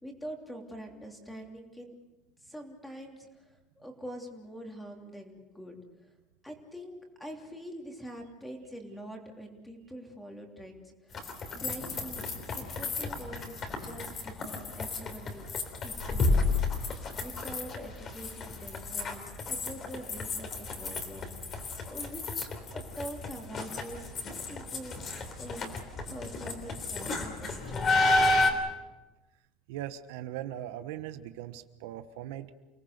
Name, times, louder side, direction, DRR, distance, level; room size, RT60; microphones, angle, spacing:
voice 1, 0.0-1.9 2.4-6.1 6.4-6.9 7.2-16.9 17.2-24.1 24.5-25.0 25.4-25.8 26.1-28.6, equal, 5° left, 2 dB, 3.1 m, -45 dB
sound 1, 11.1-28.5, left 3 dB, 30° left, 3.5 m, -32 dB
voice 2, 29.7-32.5, right 12 dB, 80° right, 10 dB, 1.2 m, -39 dB
29.0 x 19.0 x 6.7 m, 1.1 s
cardioid pair, 155°, 0 cm